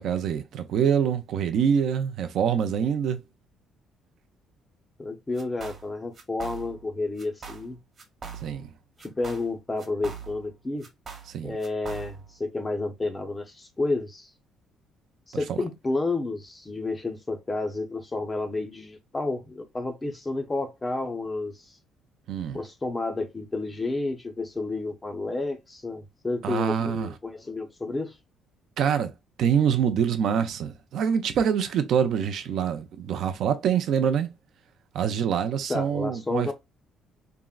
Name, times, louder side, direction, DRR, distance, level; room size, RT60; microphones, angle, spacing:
voice 1, 0.0-3.2 8.4-8.7 11.3-11.6 15.5-15.6 22.3-22.6 26.4-27.1 28.8-29.1 29.4-34.3 34.9-36.5, right 8 dB, 60° right, 0.5 m, -25 dB
voice 2, 5.0-7.8 9.0-10.9 11.4-14.3 15.3-21.7 22.5-28.1 35.7-36.5, left 2 dB, 15° left, 0.5 m, -31 dB
sound 1, 5.4-5.9 6.1-6.9 7.2-7.7 8.0-8.7 9.0-10.5 10.8-12.3, right 6 dB, 35° right, 1.0 m, -41 dB
3.5 x 2.0 x 2.2 m
cardioid pair, 160°, 0 cm